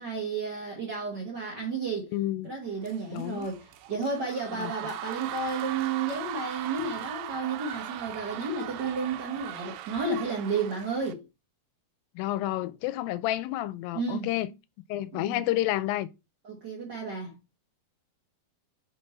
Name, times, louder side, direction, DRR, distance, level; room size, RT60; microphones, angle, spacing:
voice 1, 0.0-2.1 2.4-11.2 13.9-14.3 15.1-15.4 16.4-17.4, right 4 dB, 65° right, 1.0 m, -32 dB
voice 2, 2.1-2.5 3.1-3.5 4.5-4.7 12.2-14.5 14.9-16.1, left 15 dB, 85° left, 2.3 m, -30 dB
sound 1, 2.8-11.1, right 12 dB, 90° right, 2.4 m, -39 dB
5.4 x 4.6 x 4.2 m
omnidirectional pair, 4.0 m